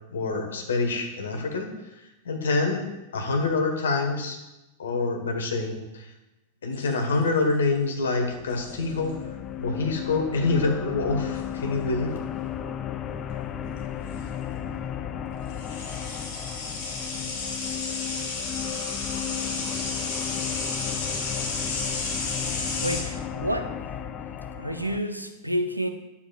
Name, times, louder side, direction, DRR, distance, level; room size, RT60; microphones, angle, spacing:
voice 1, 0.1-1.7 2.2-2.8 3.1-4.4 4.8-6.1 6.6-9.2 9.6-12.2, left 3 dB, 65° left, 4 dB, 1.3 m, -26 dB
sound 1, 6.7-7.5 8.5-8.9 11.3-11.6 13.8-13.9 14.1-14.2 15.5-23.0, left 3 dB, 50° left, 1.8 m, -32 dB
sound 2, 8.0-25.0, left 9 dB, 30° left, 0.4 m, -34 dB
voice 2, 22.8-23.8 24.6-25.9, equal, 90° right, 7 dB, 0.6 m, -29 dB
10.0 x 7.1 x 2.4 m, 0.97 s
figure-of-eight pair, 90°, 0 cm